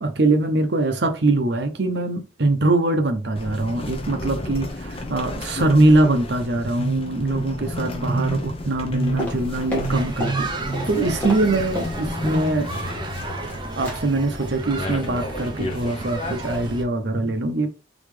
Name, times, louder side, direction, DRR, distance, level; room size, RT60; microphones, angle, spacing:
voice 1, 0.0-12.7 13.8-17.7, right 2 dB, 60° right, 0.7 m, -22 dB
sound 1, 3.4-16.7, left 2 dB, 30° left, 0.6 m, -33 dB
sound 2, 9.2-10.4 10.7-12.5 12.8-13.5 13.8-14.0 14.3-14.5 14.9-15.1 15.4-15.5, left 1 dB, 10° left, 1.5 m, -32 dB
sound 3, 9.9-16.8, right 2 dB, 25° right, 0.6 m, -33 dB
4.0 x 2.9 x 3.2 m
head